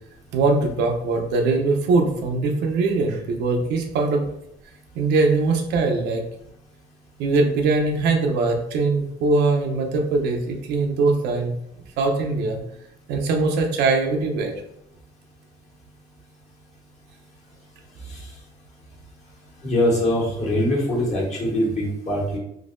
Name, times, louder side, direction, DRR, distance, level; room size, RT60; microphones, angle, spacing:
voice 1, 0.3-4.2 5.0-6.2 7.2-11.5 12.0-12.6 13.1-14.5, right 3 dB, 85° right, 3 dB, 0.7 m, -21 dB
voice 2, 19.6-22.4, left 1 dB, 40° left, -3 dB, 1.3 m, -22 dB
3.8 x 2.7 x 2.6 m, 0.77 s
cardioid pair, 110°, 17 cm